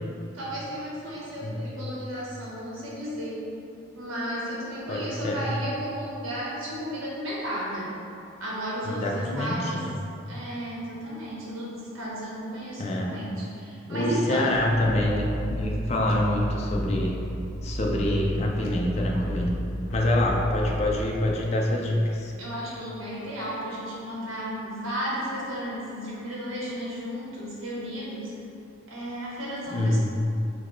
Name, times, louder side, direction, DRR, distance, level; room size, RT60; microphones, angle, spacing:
voice 1, 0.3-3.5 3.9-7.9 8.4-9.8 10.3-14.6 18.5-18.6 22.4-28.3 28.9-30.0, equal, 90° right, -6 dB, 1.0 m, -34 dB
voice 2, 4.9-5.4 8.8-9.9 12.8-13.2 13.9-17.2 17.6-19.6 19.9-22.3 29.7-30.0, left 1 dB, 30° left, -1 dB, 0.4 m, -26 dB
sound 1, 14.5-21.0, equal, 85° left, 0.5 m, -33 dB
5.8 x 2.2 x 3.1 m, 2.6 s
head